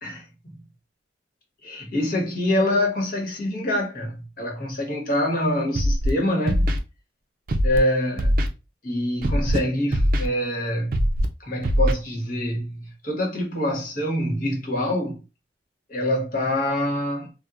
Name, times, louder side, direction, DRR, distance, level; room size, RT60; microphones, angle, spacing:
voice 1, 0.0-0.5 1.6-6.7 7.6-8.4 8.8-11.1 11.4-15.2 15.9-17.3, left 1 dB, 50° left, 1.2 m, -25 dB
Scratching (performance technique), 5.7-6.1 6.5-6.8 7.5-7.8 8.2-8.5 9.2-9.6 9.9-10.3 10.9-11.2 11.6-11.9, equal, 50° right, 0.5 m, -21 dB
4.3 x 2.2 x 2.4 m
head